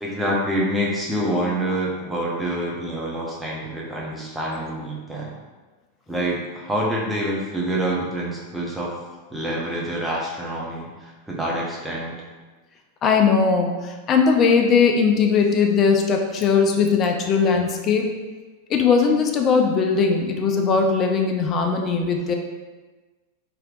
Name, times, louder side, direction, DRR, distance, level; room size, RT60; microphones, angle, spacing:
voice 1, 0.0-5.3 6.1-8.9 9.3-12.2, right 1 dB, 5° right, -5 dB, 0.7 m, -26 dB
voice 2, 13.0-18.1 18.7-22.3, left 5 dB, 30° left, 3 dB, 0.4 m, -19 dB
3.2 x 2.9 x 2.4 m, 1.3 s
figure-of-eight pair, 90°, 0 cm